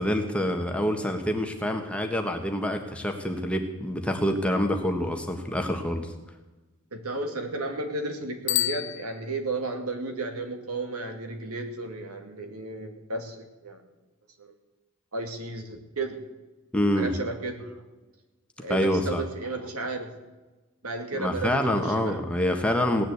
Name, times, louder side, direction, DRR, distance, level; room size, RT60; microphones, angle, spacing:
voice 1, 0.0-6.1 16.7-17.1 18.7-19.2 21.1-23.0, equal, 5° left, 4 dB, 1.5 m, -26 dB
voice 2, 6.9-13.8 14.4-14.5 15.1-16.2 17.0-17.8 18.6-20.1 20.8-22.2, right 2 dB, 85° right, 5 dB, 2.5 m, -33 dB
Bicycle bell, 8.4-9.8, left 15 dB, 55° left, 0.4 m, -30 dB
17.5 x 10.0 x 8.2 m, 1.1 s
head